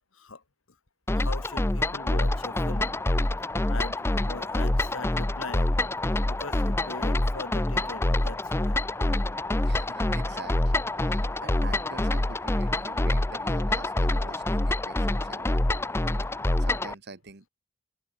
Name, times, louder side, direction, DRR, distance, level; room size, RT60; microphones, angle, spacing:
voice 1, 1.1-3.0 3.7-5.8 6.2-8.8, left 3 dB, 70° left, 1.8 m, -41 dB
sound 1, 1.1-16.9, left 1 dB, 10° left, 0.5 m, -26 dB
voice 2, 9.6-15.6 16.6-17.5, right 3 dB, 50° right, 1.3 m, -46 dB
head